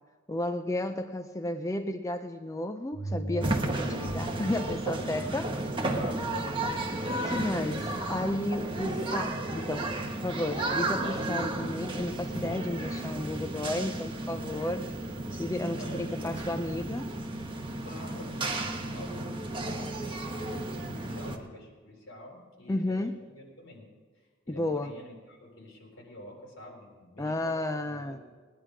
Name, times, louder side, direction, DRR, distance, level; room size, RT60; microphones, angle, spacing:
voice 1, 0.3-5.7 7.2-9.9 10.2-14.9 15.3-17.2 22.7-23.2 24.5-24.9 27.2-28.2, left 1 dB, 15° left, 7 dB, 0.4 m, -33 dB
sound 1, 2.9-7.9 8.3-8.4, right 1 dB, 5° right, 4.7 m, -40 dB
sound 2, 3.4-21.4, right 2 dB, 25° right, 1.1 m, -33 dB
voice 2, 5.2-6.8 15.5-16.6 17.8-23.9 24.5-28.2, left 1 dB, 70° left, -2 dB, 3.7 m, -47 dB
18.5 x 10.5 x 4.9 m, 1.5 s
head